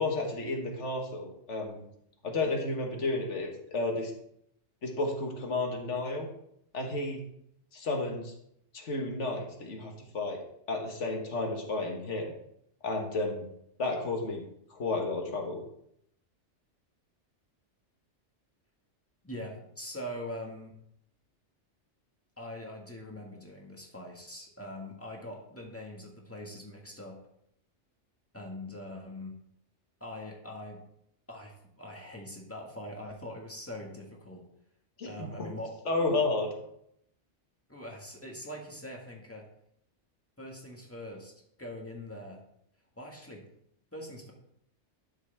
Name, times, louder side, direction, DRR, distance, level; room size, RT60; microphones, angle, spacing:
voice 1, 0.0-1.8 2.2-4.1 4.8-6.3 6.7-7.2 7.7-8.3 8.7-10.4 10.7-12.3 12.8-13.5 13.8-14.4 14.7-15.6 35.0-35.5 35.9-36.5, left 2 dB, 80° left, 2 dB, 1.8 m, -32 dB
voice 2, 19.2-20.7 22.4-27.2 28.3-29.3 30.0-30.8 31.3-34.5 35.0-35.8 37.7-39.4 40.4-41.3 41.6-42.4 43.0-43.4 43.9-44.3, left 1 dB, 10° left, -1 dB, 1.8 m, -42 dB
11.5 x 6.4 x 3.5 m, 0.73 s
omnidirectional pair, 1.2 m